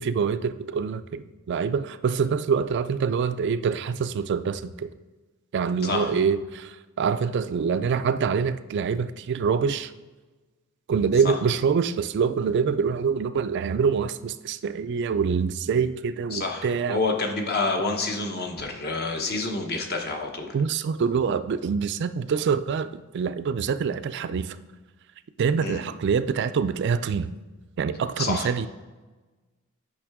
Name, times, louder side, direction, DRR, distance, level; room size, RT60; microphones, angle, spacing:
voice 1, 0.0-4.9 5.5-9.9 10.9-17.0 20.5-24.6 25.4-27.3 27.8-28.7, right 6 dB, 55° right, 12 dB, 0.3 m, -25 dB
voice 2, 5.8-6.1 11.2-11.3 16.3-20.5 25.6-25.8 28.2-28.5, left 3 dB, 50° left, 3 dB, 1.0 m, -28 dB
8.6 x 5.7 x 3.5 m, 1.2 s
head